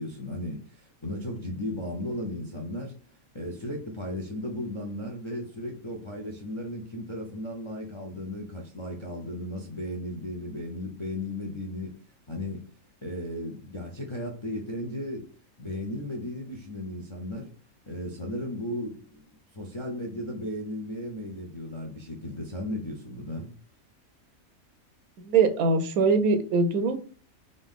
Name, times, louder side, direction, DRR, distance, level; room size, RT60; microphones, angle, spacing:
voice 1, 0.0-2.9 3.3-12.0 12.3-12.7 13.0-15.3 15.6-17.5 17.9-23.5, left 1 dB, 40° left, 1 dB, 0.4 m, -35 dB
voice 2, 25.2-27.0, right 4 dB, 90° right, 9 dB, 1.1 m, -22 dB
3.8 x 2.6 x 3.6 m, 0.40 s
omnidirectional pair, 1.5 m